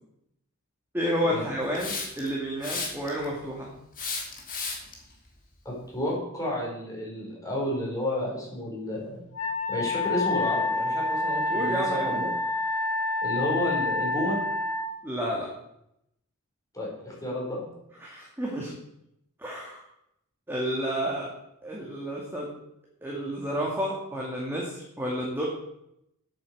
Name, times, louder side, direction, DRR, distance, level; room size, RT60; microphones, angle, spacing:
voice 1, 0.9-3.7 11.5-12.3 15.0-15.5 18.0-18.7 19.4-19.8 20.5-21.3 21.6-22.5 23.0-25.5, equal, 10° right, -3 dB, 2.1 m, -30 dB
Hiss, 1.8-2.3 2.6-3.3 4.0-4.9, left 4 dB, 40° left, 3.0 m, -33 dB
voice 2, 5.6-9.2 9.7-12.3 13.2-14.4 16.7-17.7, left 1 dB, 15° left, -3 dB, 4.8 m, -31 dB
Wind instrument woodwind instrument, 9.3-14.9, left 2 dB, 80° left, 2.2 m, -28 dB
8.6 x 8.6 x 7.8 m, 0.80 s
head